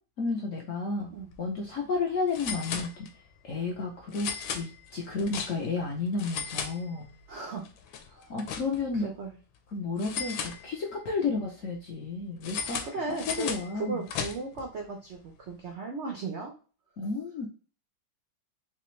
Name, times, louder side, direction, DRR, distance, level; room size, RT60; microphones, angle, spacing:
voice 1, 0.2-1.1 1.4-3.1 3.4-7.1 8.3-9.1 9.7-12.8 13.3-14.0 17.0-17.5, left 4 dB, 65° left, 0 dB, 0.8 m, -32 dB
sound 1, 1.2-1.3 1.6-1.7 2.3-3.4 4.1-5.8 6.1-7.3 7.6-9.0 10.0-11.1 12.4-14.7, left 7 dB, 85° left, 1.3 m, -37 dB
voice 2, 7.3-7.6 8.1-8.3 9.0-9.3 12.8-16.5, right 4 dB, 90° right, 1 dB, 0.6 m, -36 dB
3.4 x 2.9 x 3.1 m, 0.37 s
omnidirectional pair, 2.0 m